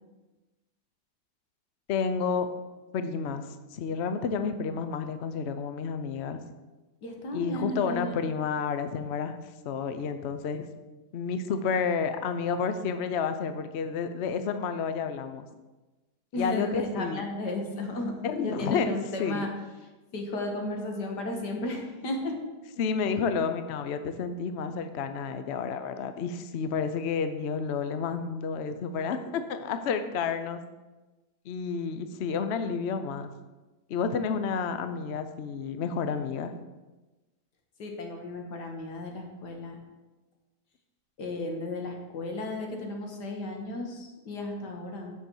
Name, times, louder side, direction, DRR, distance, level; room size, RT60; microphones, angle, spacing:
voice 1, 1.9-2.5 2.9-6.4 7.3-9.4 9.6-10.7 11.1-15.5 16.4-17.2 18.2-19.5 22.8-30.6 31.5-33.3 33.9-36.5, left 5 dB, 60° left, 9 dB, 0.7 m, -30 dB
voice 2, 7.0-8.2 16.3-19.5 20.1-22.4 37.8-39.8 41.2-45.1, left 2 dB, 85° left, 2 dB, 2.1 m, -34 dB
6.5 x 6.1 x 7.1 m, 1.1 s
omnidirectional pair, 1.7 m